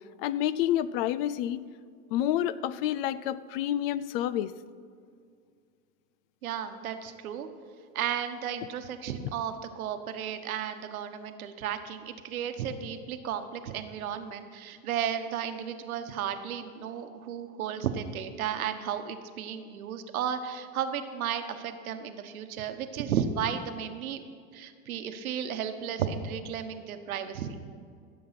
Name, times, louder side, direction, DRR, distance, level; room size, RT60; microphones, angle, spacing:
voice 1, 0.2-1.6 2.1-4.5, left 11 dB, 45° left, 17 dB, 0.4 m, -29 dB
voice 2, 6.4-7.5 7.9-24.2 24.5-27.6, right 8 dB, 90° right, 8 dB, 1.2 m, -34 dB
15.5 x 7.7 x 5.8 m, 2.2 s
supercardioid pair, 135°, 41 cm